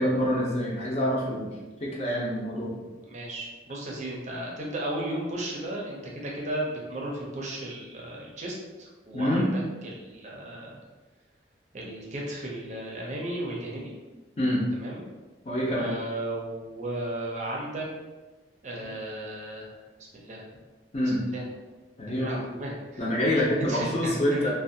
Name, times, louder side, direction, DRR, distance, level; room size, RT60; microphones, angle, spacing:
voice 1, 0.0-1.5 1.8-2.8 9.1-9.5 14.4-14.6 15.4-15.9 20.9-21.2 22.0-22.4 23.0-24.5, equal, 35° left, -3 dB, 0.5 m, -26 dB
voice 2, 3.0-10.8 11.7-13.9 14.7-15.0 15.8-17.9 18.6-19.8 20.1-20.4 21.0-21.5 22.1-23.1 23.7-24.5, right 1 dB, 40° right, -2 dB, 0.5 m, -35 dB
2.5 x 2.2 x 2.6 m, 1.2 s
head